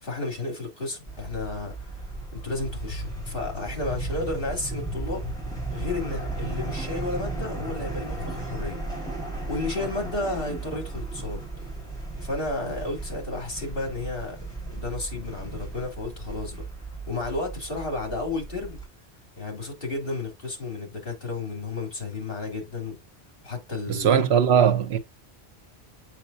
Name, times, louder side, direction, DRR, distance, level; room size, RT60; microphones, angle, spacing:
voice 1, 0.0-2.0 2.3-5.2 5.7-8.8 9.5-11.7 12.2-14.4 14.7-16.6 17.1-18.8 19.4-23.0 23.4-24.2, left 2 dB, 55° left, 3.2 m, -32 dB
sound 1, 1.1-18.9, right 2 dB, 5° left, 4.5 m, -35 dB
voice 2, 23.9-25.0, right 8 dB, 70° right, 1.0 m, -20 dB
7.4 x 5.7 x 2.7 m
omnidirectional pair, 1.1 m